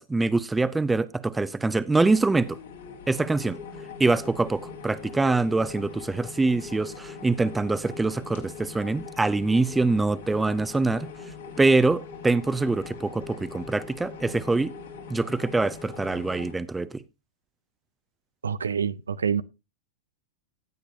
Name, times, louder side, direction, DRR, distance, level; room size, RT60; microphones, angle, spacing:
voice 1, 0.0-2.6 3.1-3.6 4.0-11.1 11.6-14.7 15.1-17.0, right 3 dB, 10° right, 0.6 m, -24 dB
sound 1, 2.1-16.5, left 5 dB, 70° left, 2.6 m, -41 dB
voice 2, 18.4-19.4, right 7 dB, 80° right, 0.5 m, -26 dB
16.0 x 8.2 x 2.7 m
figure-of-eight pair, 95°, 0 cm